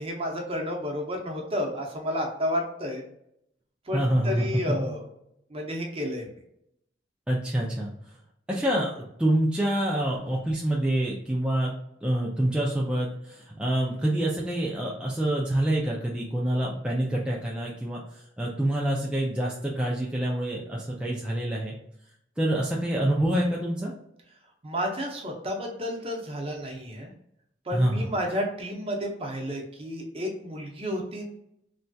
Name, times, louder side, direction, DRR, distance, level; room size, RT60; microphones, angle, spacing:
voice 1, 0.0-3.0 3.9-5.0 5.5-6.3 24.6-27.1 27.7-31.3, equal, 30° right, 1 dB, 0.7 m, -31 dB
voice 2, 3.9-4.5 4.8-4.9 7.3-7.9 8.5-11.7 12.0-18.0 18.4-21.8 22.4-23.9 27.7-28.0, right 1 dB, 5° right, -4 dB, 0.3 m, -26 dB
3.2 x 2.6 x 2.2 m, 0.76 s
head